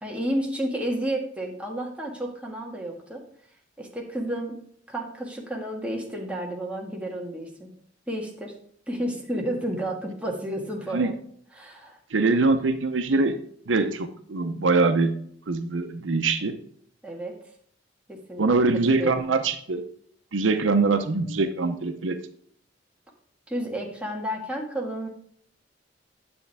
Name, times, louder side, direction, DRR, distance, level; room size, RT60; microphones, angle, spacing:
voice 1, 0.0-3.2 3.8-4.6 4.9-7.7 8.1-8.5 8.9-11.1 11.5-12.0 17.0-17.4 18.1-18.5 18.9-19.3 23.5-25.1, right 1 dB, 5° right, -1 dB, 1.6 m, -31 dB
voice 2, 12.1-13.4 13.7-15.1 15.5-16.6 18.4-19.8 20.3-22.2, right 3 dB, 80° right, 8 dB, 0.7 m, -23 dB
9.7 x 7.5 x 3.4 m, 0.62 s
head